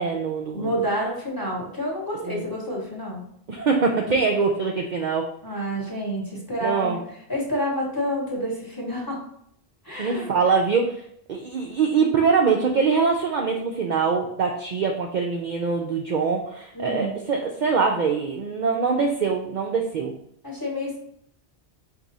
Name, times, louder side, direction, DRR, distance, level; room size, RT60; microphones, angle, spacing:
voice 1, 0.0-0.8 2.2-2.4 3.5-5.3 6.6-7.0 10.0-11.0 11.3-20.1, right 5 dB, 55° right, 1 dB, 0.5 m, -23 dB
voice 2, 0.5-3.2 5.4-7.0 7.3-9.2 9.8-10.3 16.7-17.1 20.4-21.0, equal, 20° left, -3 dB, 1.1 m, -28 dB
4.8 x 2.7 x 4.0 m, 0.70 s
omnidirectional pair, 1.1 m